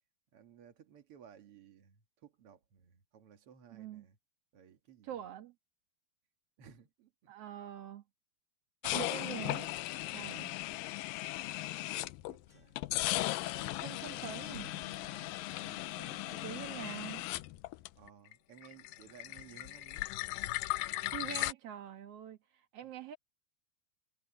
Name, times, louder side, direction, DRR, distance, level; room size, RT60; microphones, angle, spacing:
voice 1, 0.3-4.2 4.5-5.2 6.6-7.3 10.2-10.6 11.7-12.8 13.4-14.3 15.6-16.7 18.0-20.1 21.1-21.3, right 8 dB, 50° right, 1.9 m, -58 dB
voice 2, 3.7-4.0 5.0-5.5 7.3-8.0 8.8-9.7 10.1-10.5 13.7-14.7 16.4-17.3 21.0-23.2, right 10 dB, 65° right, 1.5 m, -44 dB
sound 1, 8.8-12.4 12.8-18.3 18.6-21.5, left 17 dB, 85° left, 2.0 m, -37 dB
sound 2, 12.0-13.2 13.5-13.7 14.5-17.1, left 1 dB, 20° left, 8.3 m, -58 dB
omnidirectional pair, 4.6 m